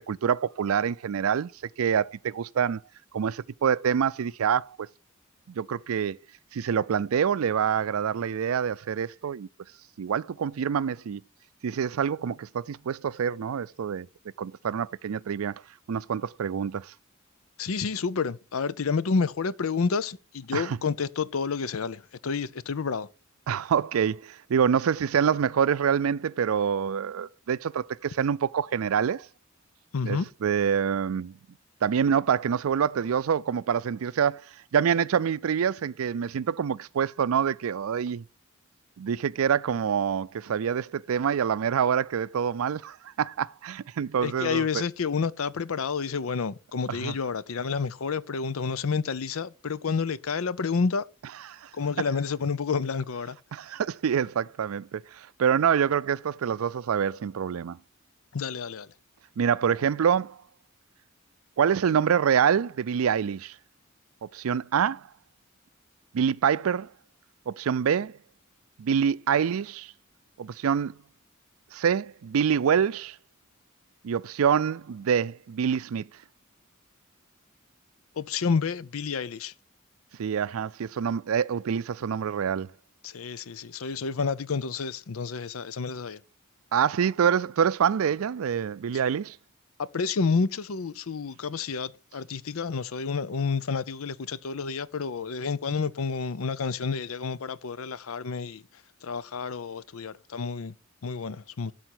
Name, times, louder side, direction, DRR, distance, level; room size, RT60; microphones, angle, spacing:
voice 1, 0.1-1.5 1.8-2.8 3.1-4.8 5.5-6.2 6.5-9.5 10.0-11.2 11.6-14.1 14.4-15.6 15.9-16.9 20.5-20.8 23.5-29.3 30.0-31.3 31.8-34.4 34.7-38.2 39.0-44.8 46.9-47.1 51.5-51.7 52.0-52.1 53.5-57.8 59.4-60.4 61.6-63.5 64.3-65.1 66.1-66.9 67.5-68.2 68.8-69.9 70.4-71.0 71.7-73.2 74.0-76.1 80.2-82.7 86.7-89.4, right 7 dB, 80° right, 0.4 m, -26 dB
voice 2, 17.6-23.1 29.9-30.3 44.2-51.0 51.7-53.4 58.3-58.9 78.2-79.5 83.0-86.2 89.8-98.6 99.0-100.7 101.0-101.7, left 5 dB, 80° left, 0.6 m, -29 dB
12.5 x 4.3 x 5.9 m
head